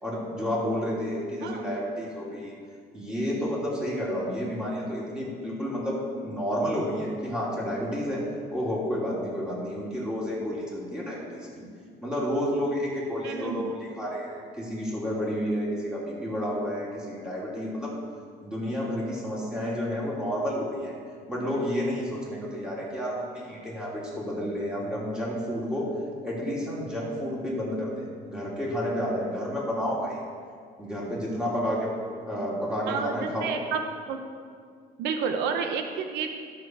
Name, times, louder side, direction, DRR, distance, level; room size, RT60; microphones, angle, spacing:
voice 1, 0.0-2.5 2.9-8.2 8.5-11.6 12.0-17.9 18.4-20.9 21.3-25.9 26.2-30.2 30.8-31.9 32.2-33.5, equal, 5° right, -6 dB, 3.0 m, -30 dB
voice 2, 1.4-1.7 13.2-13.7 32.9-33.8 34.1-34.2 35.0-36.3, right 6 dB, 90° right, 6 dB, 0.8 m, -30 dB
12.5 x 6.9 x 4.6 m, 2.1 s
cardioid pair, 110°, 17 cm